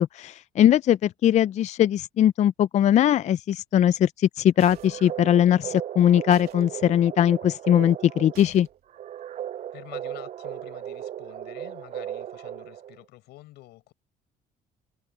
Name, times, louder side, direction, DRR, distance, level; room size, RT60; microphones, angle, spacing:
voice 1, 0.1-8.7, left 10 dB, 45° left, 0.4 m, -20 dB
sound 1, 4.6-13.0, right 11 dB, 45° right, 0.5 m, -37 dB
sound 2, 4.6-5.1 6.3-6.6 8.3-8.8, right 12 dB, 70° right, 2.8 m, -49 dB
voice 2, 9.7-13.9, left 18 dB, 85° left, 6.7 m, -48 dB
cardioid pair, 110°, 17 cm